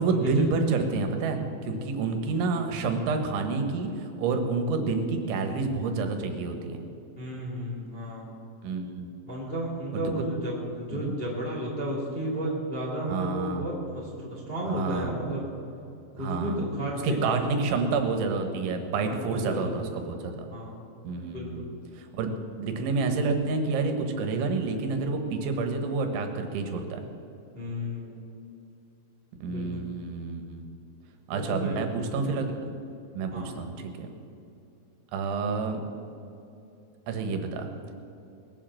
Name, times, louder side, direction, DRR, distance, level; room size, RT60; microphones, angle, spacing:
voice 1, 0.0-6.8 8.6-9.1 9.9-10.3 10.9-11.1 13.1-13.6 14.7-15.1 16.2-16.6 16.9-20.5 21.0-21.7 21.9-27.0 29.4-30.7 31.3-32.5 33.2-34.1 35.1-35.8 37.1-37.7, right 4 dB, 85° right, 5 dB, 3.7 m, -29 dB
voice 2, 7.2-8.3 9.2-15.5 16.2-17.5 19.1-19.9 20.5-20.8 21.3-21.6 27.5-28.2 29.5-29.9 31.3-32.2 33.3-33.5, equal, 20° left, -4 dB, 1.9 m, -33 dB
20.0 x 7.4 x 7.5 m, 2.7 s
omnidirectional pair, 5.3 m